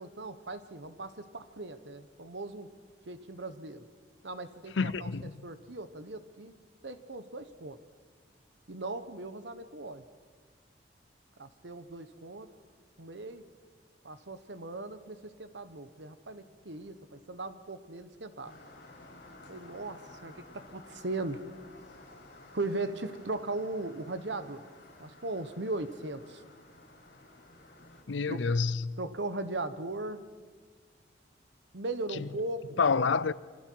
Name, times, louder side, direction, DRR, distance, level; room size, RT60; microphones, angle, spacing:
voice 1, 0.0-2.7 3.1-3.9 4.2-5.1 5.4-6.5 6.8-7.8 8.7-10.0 11.4-12.5 13.0-13.4 14.0-18.5 19.5-21.4 22.5-24.7 25.0-26.4 28.3-28.4 29.0-30.2 31.7-32.8, right 2 dB, 75° right, 1.3 m, -38 dB
voice 2, 4.8-5.3 28.1-28.9 32.1-32.3 32.8-33.3, left 4 dB, 90° left, 0.6 m, -28 dB
sound 1, 18.4-28.0, left 2 dB, 70° left, 7.5 m, -53 dB
27.5 x 25.0 x 4.8 m
head